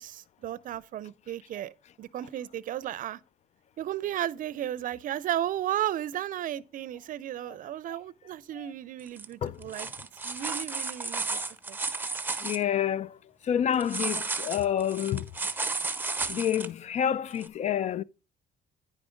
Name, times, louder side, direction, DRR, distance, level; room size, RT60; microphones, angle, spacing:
voice 1, 0.0-1.7 2.0-3.2 3.8-9.9 10.2-11.4 11.7-11.8, right 12 dB, 55° right, 0.5 m, -34 dB
sound 1, 9.1-9.3 9.6-12.6 13.8-16.7 17.4-17.5, right 3 dB, 10° right, 0.7 m, -33 dB
voice 2, 12.4-13.2 13.4-15.3 16.3-18.0, left 9 dB, 40° left, 0.4 m, -28 dB
9.7 x 4.9 x 5.1 m
cardioid pair, 110°, 17 cm